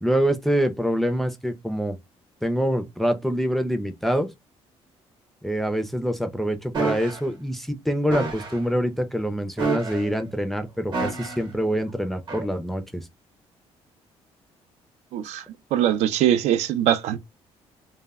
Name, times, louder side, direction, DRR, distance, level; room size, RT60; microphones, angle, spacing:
voice 1, 0.0-2.0 2.4-4.3 5.4-13.1, equal, ahead, 0.3 m, -25 dB
sound 1, 6.7-7.2 8.1-8.6 9.6-10.2 10.9-11.5 12.3-12.5, right 3 dB, 45° right, 0.8 m, -28 dB
voice 2, 15.1-15.4 15.7-17.2, right 11 dB, 85° right, 0.4 m, -22 dB
2.1 x 2.1 x 3.4 m
cardioid pair, 150°, 11 cm